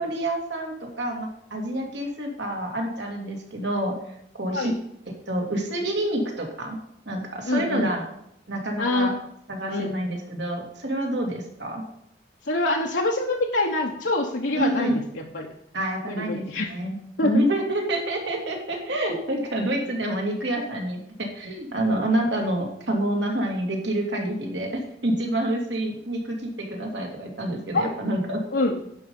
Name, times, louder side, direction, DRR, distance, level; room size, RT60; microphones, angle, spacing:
voice 1, 0.0-4.0 4.3-4.7 5.1-6.8 7.1-8.1 8.5-9.1 9.5-11.8 14.5-15.0 15.7-17.0 17.2-28.4, right 1 dB, 75° right, 1 dB, 2.5 m, -27 dB
voice 2, 7.5-7.9 8.8-9.1 9.7-9.9 12.4-15.5 16.1-16.7 17.2-17.3 27.7-27.9 28.5-28.8, left 2 dB, 80° left, -1 dB, 1.1 m, -25 dB
11.0 x 5.5 x 5.4 m, 0.78 s
head